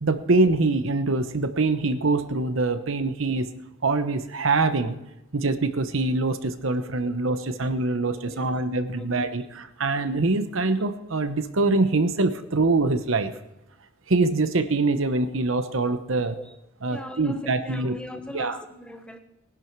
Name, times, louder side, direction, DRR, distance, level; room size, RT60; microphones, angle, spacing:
voice 1, 0.0-3.5 3.8-5.0 5.3-13.3 14.1-16.3 16.8-18.0 18.3-18.6, right 3 dB, 70° right, 1.0 m, -24 dB
voice 2, 7.2-7.6 8.1-9.4 16.3-16.6 16.9-19.2, left 1 dB, 5° left, 1.0 m, -41 dB
19.0 x 11.0 x 4.7 m
head